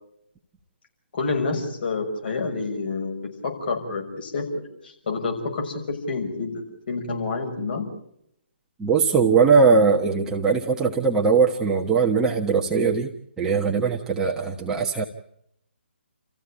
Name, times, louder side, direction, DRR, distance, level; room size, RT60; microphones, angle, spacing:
voice 1, 1.1-4.5 4.8-7.9, left 4 dB, 55° left, 3 dB, 6.2 m, -28 dB
voice 2, 8.8-15.0, right 5 dB, 10° right, -1 dB, 1.3 m, -20 dB
29.5 x 15.0 x 8.7 m, 0.75 s
figure-of-eight pair, 145°, 6 cm